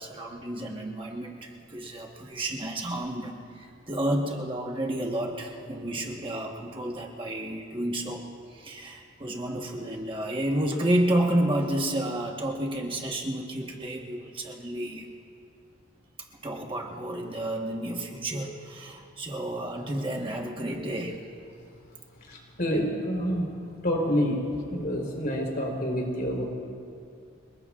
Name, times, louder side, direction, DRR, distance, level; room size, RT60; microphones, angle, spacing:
voice 1, 0.0-8.2 8.5-15.1 16.4-21.2, right 1 dB, 25° right, 0 dB, 1.2 m, -30 dB
voice 2, 22.3-23.4 23.8-24.4 24.7-26.4, equal, 50° left, 0 dB, 3.7 m, -27 dB
29.0 x 20.0 x 2.4 m, 2.4 s
head